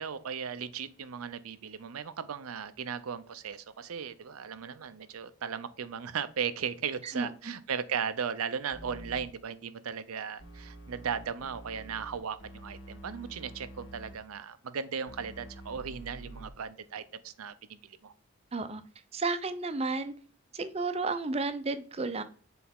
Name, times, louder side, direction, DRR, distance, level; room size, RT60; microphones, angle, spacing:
voice 1, 0.0-18.1, right 7 dB, 85° right, 0.6 m, -37 dB
voice 2, 7.0-7.5 18.5-18.8 19.1-20.1 20.5-22.2, right 3 dB, 30° right, 0.5 m, -32 dB
sound 1, 8.7-9.3 10.4-14.2 15.1-16.5, right 1 dB, 60° left, 1.5 m, -47 dB
7.1 x 4.1 x 3.6 m
head